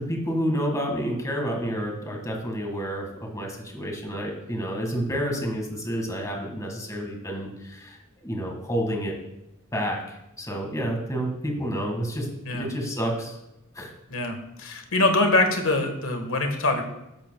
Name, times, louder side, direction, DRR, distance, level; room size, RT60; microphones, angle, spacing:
voice 1, 0.0-9.2 9.7-13.4 13.7-13.9, equal, 15° left, 1 dB, 1.8 m, -29 dB
voice 2, 14.1-16.8, left 2 dB, 70° left, 5 dB, 1.5 m, -24 dB
13.0 x 11.0 x 2.3 m, 0.91 s
head